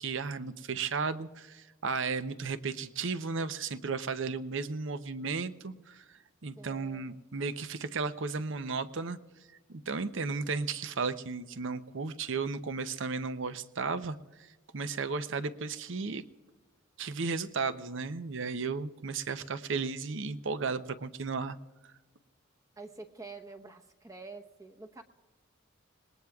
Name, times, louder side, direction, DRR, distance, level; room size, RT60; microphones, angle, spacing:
voice 1, 0.0-9.2 9.7-16.2 17.0-21.6, right 4 dB, 60° right, 12 dB, 0.7 m, -34 dB
voice 2, 6.6-7.1 22.8-25.0, right 3 dB, 15° right, 4 dB, 0.9 m, -47 dB
27.0 x 20.0 x 2.4 m, 1.3 s
head